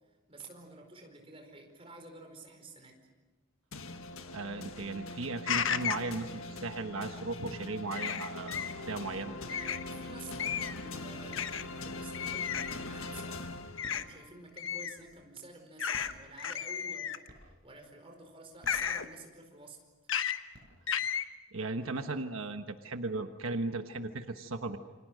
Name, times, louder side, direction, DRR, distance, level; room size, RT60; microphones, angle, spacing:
voice 1, 0.3-3.1 9.4-13.4 13.9-19.8, right 3 dB, 25° right, 3 dB, 4.7 m, -51 dB
sound 1, 3.7-14.3, left 2 dB, 90° left, 1.6 m, -42 dB
voice 2, 4.3-9.3 21.5-24.8, right 3 dB, 80° right, 7 dB, 1.2 m, -36 dB
sound 2, 5.5-6.1 7.9-8.7 9.5-9.8 10.4-10.8 11.3-11.6 12.1-12.7 13.8-14.0 14.6-15.0 15.8-16.1 16.4-17.3 18.7-19.1 20.1-20.4 20.9-21.2, left 8 dB, 70° left, 1.2 m, -33 dB
sound 3, 12.5-13.0 13.6-15.4 15.8-17.0 17.3-17.8 18.4-19.5 20.0-20.1 20.3-21.2, equal, 45° right, 6.9 m, -55 dB
29.0 x 25.5 x 6.5 m, 1.3 s
head